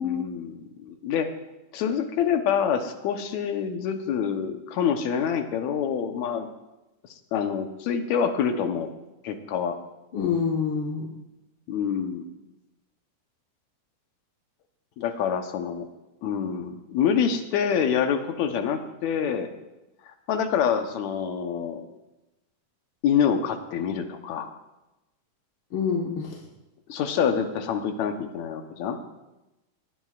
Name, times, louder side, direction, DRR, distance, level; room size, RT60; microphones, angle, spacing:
voice 1, 0.0-1.3 1.7-6.5 7.3-8.9 9.2-9.8 11.7-12.2 15.0-15.9 16.2-19.5 20.3-21.9 23.0-24.5 26.9-29.0, left 7 dB, 70° left, 6 dB, 2.1 m, -26 dB
voice 2, 10.1-11.1 25.7-26.4, left 6 dB, 55° left, -2 dB, 1.6 m, -27 dB
18.5 x 18.5 x 2.4 m, 1.0 s
omnidirectional pair, 3.7 m